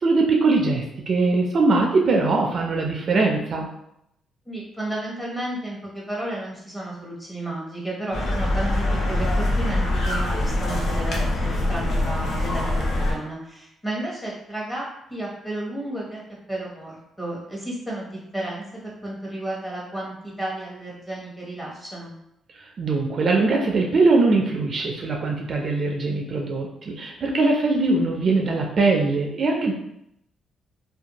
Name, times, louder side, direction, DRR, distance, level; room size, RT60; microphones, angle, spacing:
voice 1, 0.0-3.7 22.6-29.7, right 3 dB, 50° right, 1 dB, 0.4 m, -21 dB
voice 2, 4.5-16.2 16.5-22.1, right 1 dB, 10° left, -5 dB, 1.1 m, -32 dB
sound 1, 8.1-13.1, left 1 dB, 60° left, 0.7 m, -24 dB
2.5 x 2.2 x 2.9 m, 0.78 s
cardioid pair, 90°, 0 cm